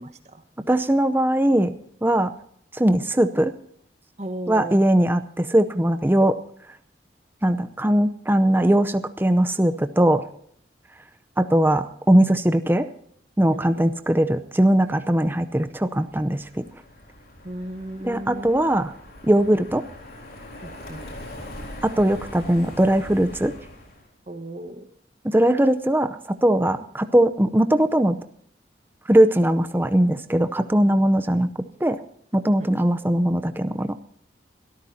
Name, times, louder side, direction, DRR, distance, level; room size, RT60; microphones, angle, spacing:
voice 1, 0.0-0.7 4.2-4.8 13.5-13.9 17.4-18.5 20.6-21.0 24.3-24.9 32.6-32.7, right 1 dB, 40° right, 8 dB, 1.3 m, -36 dB
voice 2, 0.7-1.7 2.0-2.3 2.7-3.5 4.5-6.4 7.4-10.2 11.4-12.9 13.4-16.7 18.0-18.9 19.3-19.8 21.8-23.5 25.2-28.2 29.1-31.5 31.8-32.0 32.3-34.0, right 1 dB, 10° right, 10 dB, 0.6 m, -20 dB
Car passing by, 15.6-24.1, left 1 dB, 55° left, 3.8 m, -42 dB
23.5 x 13.5 x 2.8 m, 0.65 s
head